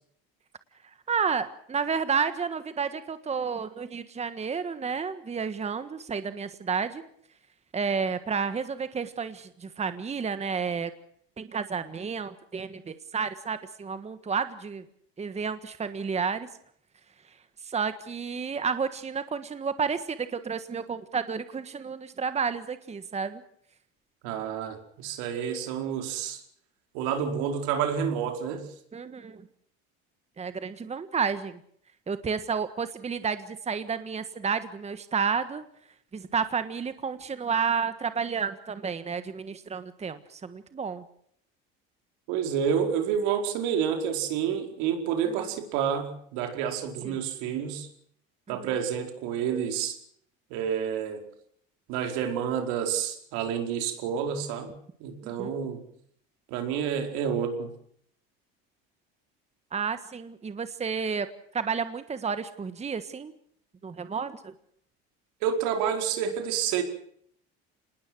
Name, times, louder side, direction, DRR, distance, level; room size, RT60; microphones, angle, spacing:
voice 1, 1.1-7.0 7.7-10.9 11.4-14.8 15.2-16.5 17.6-23.4 28.9-29.4 30.4-31.6 32.1-35.6 36.1-41.0 45.2-45.5 47.0-47.2 48.5-48.7 55.2-55.5 59.7-61.3 61.5-63.3 63.8-64.5, right 6 dB, 20° right, 11 dB, 1.5 m, -31 dB
voice 2, 24.2-26.4 26.9-28.7 42.3-47.9 48.5-50.0 50.5-51.2 51.9-54.7 55.0-55.8 56.5-57.7 65.4-66.8, right 8 dB, 75° right, 5 dB, 4.8 m, -29 dB
26.5 x 20.0 x 6.2 m, 0.65 s
supercardioid pair, 105°, 29 cm